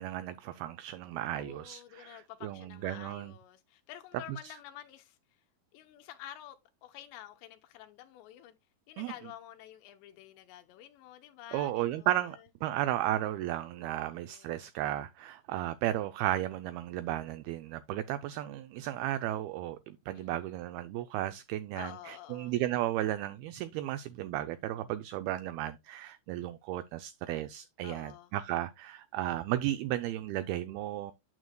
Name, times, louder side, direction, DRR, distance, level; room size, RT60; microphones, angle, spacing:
voice 1, 0.0-3.3 4.3-4.5 9.0-9.1 11.5-31.1, right 14 dB, 85° right, 2.2 m, -34 dB
voice 2, 1.3-5.4 5.7-6.6 6.8-8.6 8.9-12.1 14.0-14.6 20.1-20.5 21.7-22.5 27.8-28.3, left 12 dB, 85° left, 3.1 m, -49 dB
9.3 x 7.8 x 2.2 m
omnidirectional pair, 4.9 m